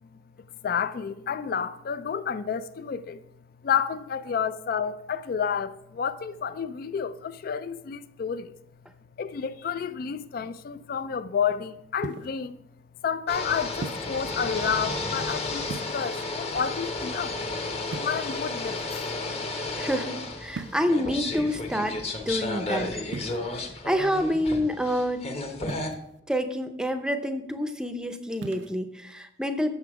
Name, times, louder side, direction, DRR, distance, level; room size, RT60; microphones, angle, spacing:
voice 1, 0.6-3.2 3.6-8.5 9.2-12.6 13.0-17.4 18.0-19.0 19.5-19.6, left 7 dB, 50° left, 0.3 m, -30 dB
sound 1, 12.0-12.5 13.8-14.2 15.6-16.3 17.9-18.6 20.5-21.1 23.1-23.4 25.7-26.2 28.3-28.7, right 4 dB, 65° right, 0.4 m, -38 dB
sound 2, 13.3-25.9, left 2 dB, 30° left, 1.0 m, -32 dB
voice 2, 19.8-22.0 22.3-23.0 23.8-25.2 26.3-29.7, equal, 5° right, 0.6 m, -28 dB
8.1 x 6.7 x 4.8 m
head